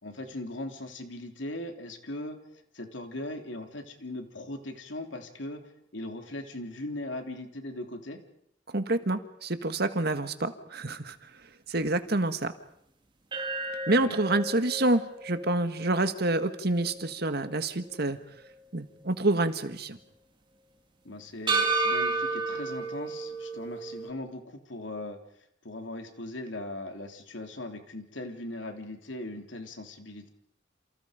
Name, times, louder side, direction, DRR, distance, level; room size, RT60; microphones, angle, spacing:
voice 1, 0.0-2.4 2.7-8.2 14.0-14.2 21.0-25.2 25.6-30.3, left 1 dB, 80° left, 5 dB, 3.3 m, -39 dB
voice 2, 8.7-11.3 11.7-12.5 13.9-18.2 18.7-20.0, right 2 dB, 55° right, 9 dB, 1.8 m, -27 dB
sound 1, 13.3-17.6 18.0-18.1 21.5-24.1, right 3 dB, 25° right, 2.6 m, -32 dB
28.5 x 28.5 x 5.2 m, 0.73 s
head